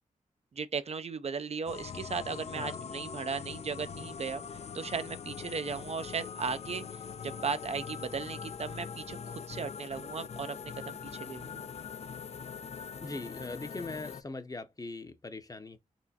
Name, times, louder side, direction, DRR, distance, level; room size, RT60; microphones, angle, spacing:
voice 1, 0.6-6.9 7.2-11.7, right 5 dB, 50° right, 0.5 m, -36 dB
sound 1, 1.7-14.2, left 6 dB, 50° left, 0.4 m, -42 dB
voice 2, 13.0-15.8, left 2 dB, 25° left, 0.7 m, -41 dB
4.2 x 3.0 x 2.8 m
cardioid pair, 65°, 14 cm